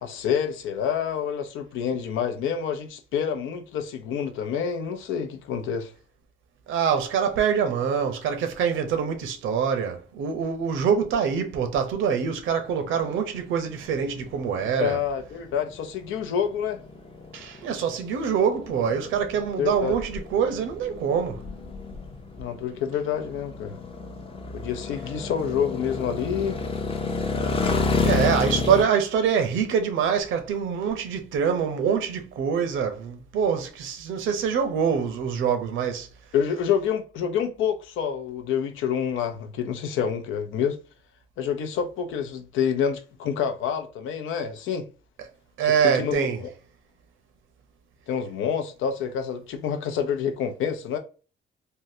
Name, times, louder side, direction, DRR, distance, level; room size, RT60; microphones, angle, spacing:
voice 1, 0.0-5.9 14.8-16.8 19.6-20.0 22.4-23.8 24.5-26.6 36.3-40.8 41.4-44.9 45.6-46.5 48.1-51.0, left 8 dB, 85° left, 0.6 m, -28 dB
voice 2, 6.7-15.0 17.3-21.4 28.0-36.1 45.6-46.4, right 7 dB, 80° right, 0.7 m, -25 dB
sound 1, 12.7-28.8, left 3 dB, 30° left, 0.6 m, -31 dB
3.6 x 2.1 x 2.7 m
cardioid pair, 90°, 20 cm